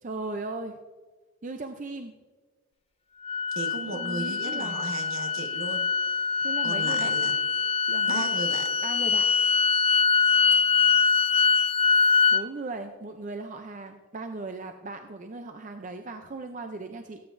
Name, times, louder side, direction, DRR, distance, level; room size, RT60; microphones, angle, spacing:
voice 1, 0.0-0.8 1.4-2.1 3.9-5.0 6.4-7.1 7.9-8.4 8.8-9.3 12.3-17.2, right 3 dB, 35° right, 6 dB, 0.5 m, -37 dB
sound 1, 3.3-12.4, left 5 dB, 25° left, 0.3 m, -24 dB
voice 2, 3.5-5.9 6.6-7.3 8.1-8.7, right 3 dB, 70° right, 4 dB, 1.4 m, -35 dB
17.5 x 9.0 x 2.6 m, 1.4 s
head